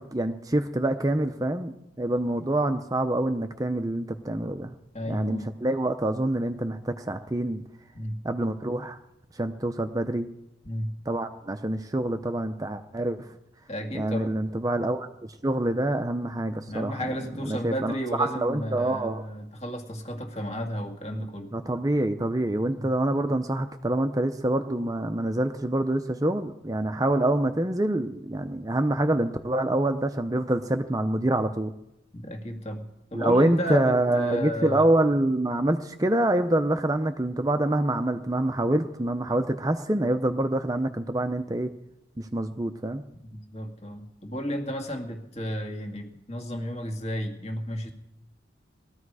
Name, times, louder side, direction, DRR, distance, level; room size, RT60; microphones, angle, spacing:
voice 1, 0.1-4.7 5.1-7.6 8.2-9.0 9.3-10.3 11.1-13.3 13.9-17.1 17.5-19.2 21.5-31.7 33.1-41.7 42.2-43.0, right 1 dB, 20° right, 8 dB, 0.6 m, -26 dB
voice 2, 4.9-5.5 7.9-8.2 10.6-11.0 13.7-14.4 16.7-21.5 22.8-22.9 32.1-34.9 43.1-47.9, equal, 35° left, 4 dB, 2.0 m, -33 dB
20.5 x 13.5 x 4.8 m, 0.88 s
head